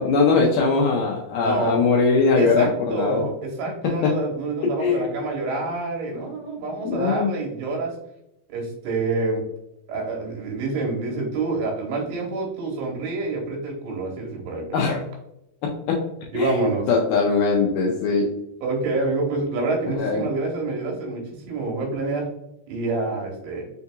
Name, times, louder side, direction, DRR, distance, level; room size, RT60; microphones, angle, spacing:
voice 1, 0.0-3.3 3.8-4.1 4.6-5.2 6.8-7.3 14.7-15.0 15.6-16.1 16.3-18.3 20.0-20.3, left 4 dB, 85° left, -1 dB, 1.8 m, -21 dB
voice 2, 1.4-1.8 2.4-7.9 8.5-9.4 9.9-14.9 16.3-16.8 18.6-21.2 21.5-22.2 22.7-23.7, right 3 dB, 85° right, 0 dB, 3.1 m, -27 dB
6.2 x 2.7 x 2.3 m, 0.83 s
omnidirectional pair, 4.4 m